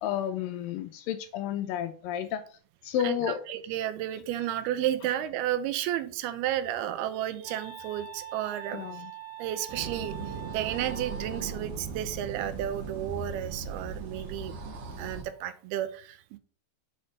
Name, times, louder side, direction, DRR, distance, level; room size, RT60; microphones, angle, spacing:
voice 1, 0.0-2.4 2.8-3.4 8.7-9.1, left 9 dB, 80° left, 9 dB, 2.1 m, -31 dB
voice 2, 3.5-9.0 9.4-10.1 10.5-16.4, right 12 dB, 85° right, 11 dB, 2.7 m, -32 dB
Wind instrument woodwind instrument, 6.1-11.5, right 8 dB, 60° left, 3.4 m, -44 dB
sound 1, 9.7-15.2, right 4 dB, 60° right, 2.0 m, -38 dB
6.7 x 5.6 x 5.6 m, 0.42 s
omnidirectional pair, 4.4 m